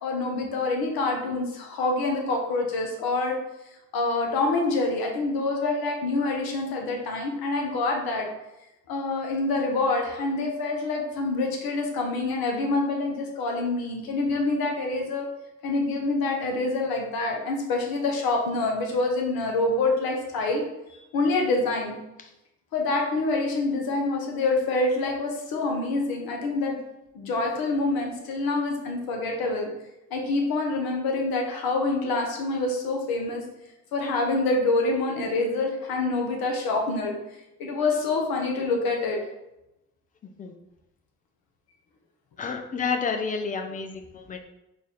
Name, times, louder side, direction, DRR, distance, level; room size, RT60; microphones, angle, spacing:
voice 1, 0.0-3.4 3.9-8.3 8.9-15.3 15.6-20.6 21.1-21.9 22.7-26.8 27.1-29.7 30.1-33.4 33.9-37.1 37.6-39.2, left 3 dB, 50° left, 1 dB, 1.0 m, -26 dB
voice 2, 42.4-44.4, left 5 dB, 20° left, 5 dB, 0.3 m, -30 dB
3.9 x 2.5 x 3.7 m, 0.93 s
figure-of-eight pair, 50°, 47 cm